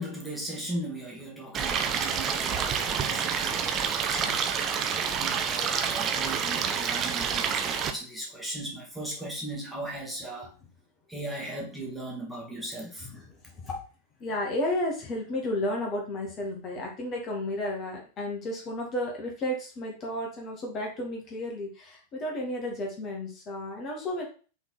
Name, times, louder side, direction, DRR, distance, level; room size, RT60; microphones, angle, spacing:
voice 1, 0.0-4.4 4.9-10.5 11.1-13.2, right 1 dB, ahead, -5 dB, 2.1 m, -38 dB
Stream, 1.5-7.9, right 7 dB, 30° right, 0.8 m, -28 dB
voice 2, 14.2-24.3, left 1 dB, 30° left, -1 dB, 2.1 m, -32 dB
5.8 x 4.0 x 4.2 m, 0.37 s
figure-of-eight pair, 90°, 0 cm